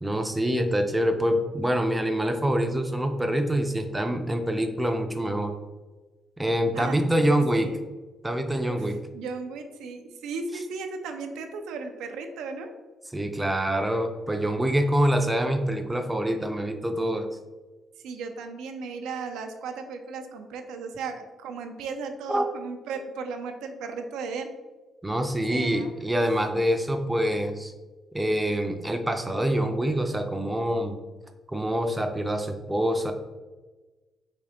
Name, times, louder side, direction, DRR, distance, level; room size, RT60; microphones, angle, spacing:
voice 1, 0.0-5.5 6.4-7.7 8.2-9.0 10.5-10.6 13.1-17.3 22.3-22.4 25.0-27.7 28.1-31.0 31.5-33.1, equal, 10° right, 5 dB, 0.4 m, -25 dB
voice 2, 6.7-7.8 8.7-8.9 9.1-12.7 18.0-24.5 25.5-25.9, right 4 dB, 90° right, 5 dB, 0.4 m, -36 dB
3.6 x 2.5 x 3.5 m, 1.2 s
cardioid pair, 90°, 0 cm